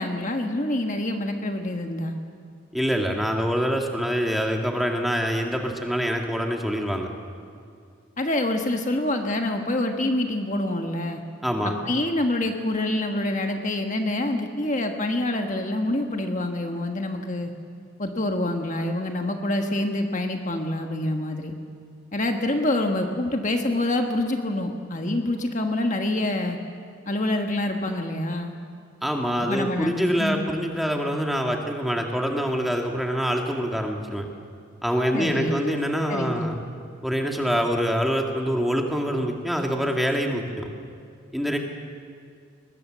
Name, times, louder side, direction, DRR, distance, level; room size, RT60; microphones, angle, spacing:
voice 1, 0.0-2.1 8.2-11.2 11.6-17.5 18.0-21.5 22.1-26.6 27.1-28.5 29.4-29.9 30.2-30.4 35.1-35.8 36.1-36.4, left 1 dB, 35° left, 4 dB, 1.4 m, -26 dB
voice 2, 2.7-7.1 11.4-11.7 29.0-34.3 34.8-36.6 37.0-40.7 41.3-41.6, equal, ahead, 1 dB, 1.9 m, -25 dB
23.0 x 21.0 x 7.4 m, 2.3 s
head